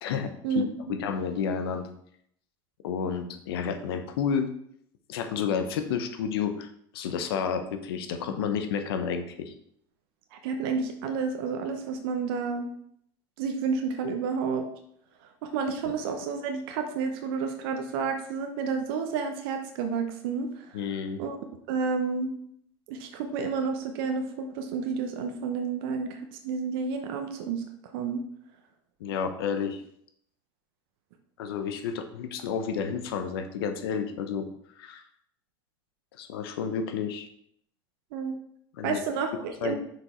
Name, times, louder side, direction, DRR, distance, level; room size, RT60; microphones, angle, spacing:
voice 1, 0.0-0.3 0.9-1.9 2.8-4.5 5.1-6.7 6.9-9.5 20.7-21.2 29.0-29.8 31.4-34.5 34.8-35.0 36.2-37.3 38.8-39.0 39.6-39.8, left 7 dB, 85° left, 8 dB, 0.9 m, -30 dB
voice 2, 10.3-12.7 13.4-14.7 15.4-20.8 21.2-21.4 21.7-22.3 22.9-27.6 27.9-28.2 38.1-38.3 38.8-39.8, right 5 dB, 75° right, 5 dB, 0.9 m, -30 dB
6.3 x 5.1 x 4.4 m, 0.69 s
hypercardioid pair, 85°, 12 cm